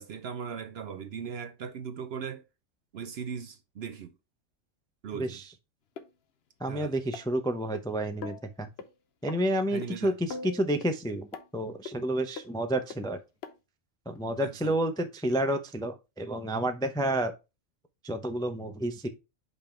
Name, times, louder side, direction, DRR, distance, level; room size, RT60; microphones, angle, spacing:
voice 1, 0.0-2.4 2.9-4.1 5.0-5.4 6.7-6.9 9.7-10.1 14.4-14.8, right 6 dB, 60° right, 0.7 m, -38 dB
sound 1, 6.0-6.1 7.1-7.8 8.2-8.4 8.8-8.9 9.3-9.4 9.8-9.9 10.3-10.9 11.3-11.5 11.9-12.0 12.4-12.5 12.9-13.0 13.4-13.5 14.2-14.3, left 5 dB, 55° left, 0.9 m, -40 dB
voice 2, 6.6-8.7 9.2-13.2 14.1-17.3 18.0-19.1, right 1 dB, 5° left, 0.4 m, -30 dB
5.4 x 5.4 x 4.4 m
omnidirectional pair, 1.4 m